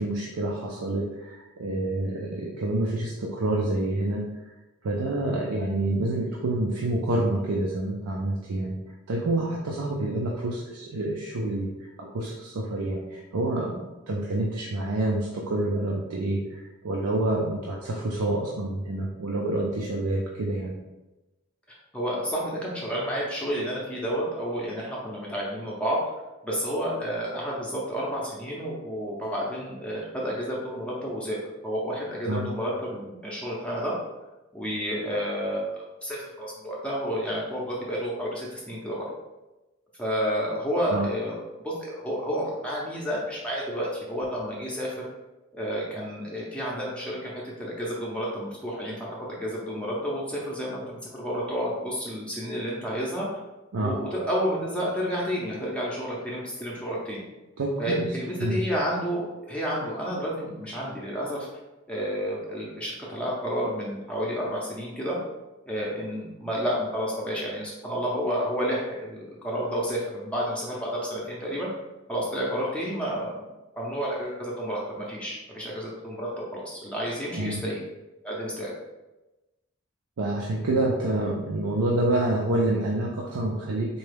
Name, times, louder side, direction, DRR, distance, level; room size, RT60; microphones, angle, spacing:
voice 1, 0.0-4.3 4.8-8.8 9.1-11.7 12.0-13.8 14.1-20.7 32.3-32.5 40.9-41.1 53.7-54.0 57.6-58.1 58.4-58.6 77.3-77.6 80.2-84.0, right 1 dB, 90° right, -2 dB, 0.5 m, -27 dB
voice 2, 21.9-26.0 26.4-31.4 31.6-33.9 34.5-35.7 36.0-39.1 40.0-44.9 45.5-53.3 53.8-57.2 57.8-61.5 61.9-65.2 65.6-71.7 72.1-73.4 73.8-77.8 78.2-78.7, equal, 5° left, -5 dB, 0.5 m, -30 dB
4.1 x 2.3 x 3.3 m, 1.1 s
head